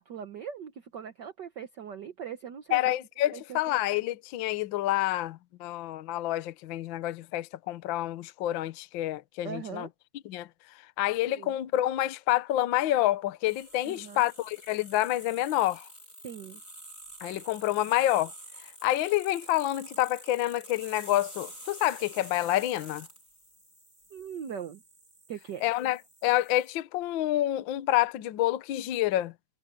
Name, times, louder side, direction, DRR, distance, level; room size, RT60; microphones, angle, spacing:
voice 1, 0.0-2.9 3.3-3.6 9.4-9.9 11.4-11.5 13.8-14.3 16.2-16.6 24.1-24.8 25.3-25.7, right 8 dB, 65° right, 1.1 m, -40 dB
voice 2, 2.7-9.9 10.2-10.5 11.0-15.9 17.2-18.3 18.8-23.1 25.6-29.3, left 14 dB, 90° left, 1.0 m, -28 dB
sound 1, 13.5-26.7, right 1 dB, 25° left, 8.5 m, -49 dB
omnidirectional pair, 3.3 m